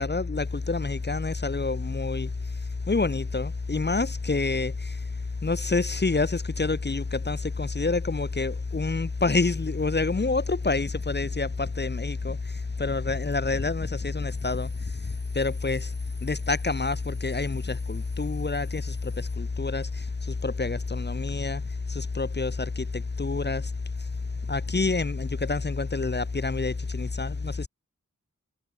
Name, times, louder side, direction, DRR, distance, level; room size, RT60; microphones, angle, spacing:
voice 1, 0.0-2.3 2.9-4.7 5.4-12.4 12.8-14.7 15.3-15.9 16.2-19.9 20.4-21.6 21.9-23.6 24.5-27.7, left 3 dB, 35° left, 0.9 m, -27 dB
sound 1, 14.3-21.4, left 1 dB, 15° left, 4.3 m, -55 dB
wide cardioid pair, 55°, 31 cm